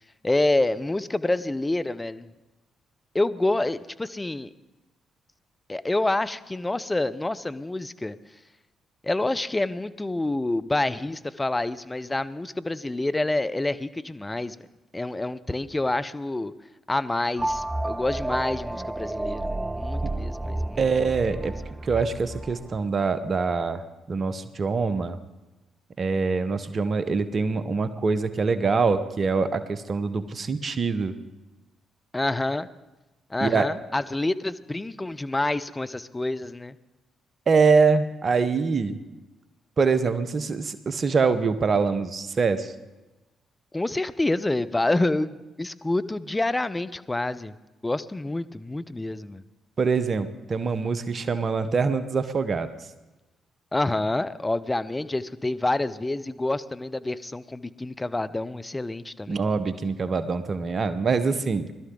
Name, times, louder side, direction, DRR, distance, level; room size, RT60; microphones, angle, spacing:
voice 1, 0.2-2.3 3.1-4.5 5.7-8.2 9.0-14.6 14.9-16.5 16.9-20.9 21.3-21.5 32.1-32.7 33.3-36.7 43.7-47.5 47.8-49.4 53.7-59.5, left 2 dB, 20° left, 13 dB, 0.7 m, -27 dB
sound 1, 17.4-22.8, right 1 dB, 15° right, 0.4 m, -31 dB
voice 2, 20.8-21.5 21.8-23.8 24.1-25.2 26.0-31.2 33.4-33.7 37.5-39.0 39.8-42.7 49.8-52.7 59.3-61.8, right 4 dB, 45° right, 11 dB, 1.0 m, -24 dB
20.5 x 12.5 x 3.9 m, 1.1 s
hypercardioid pair, 45°, 0 cm